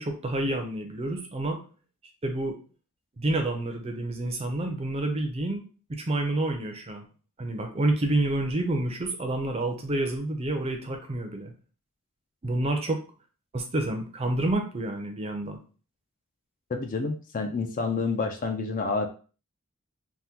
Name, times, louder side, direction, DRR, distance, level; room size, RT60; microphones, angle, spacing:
voice 1, 0.0-1.6 2.2-2.6 3.2-5.6 5.9-7.0 7.4-11.5 12.4-13.0 13.5-15.6, right 2 dB, 25° right, 4 dB, 0.5 m, -28 dB
voice 2, 16.7-19.1, left 4 dB, 35° left, 6 dB, 0.4 m, -28 dB
3.5 x 2.2 x 2.8 m, 0.37 s
head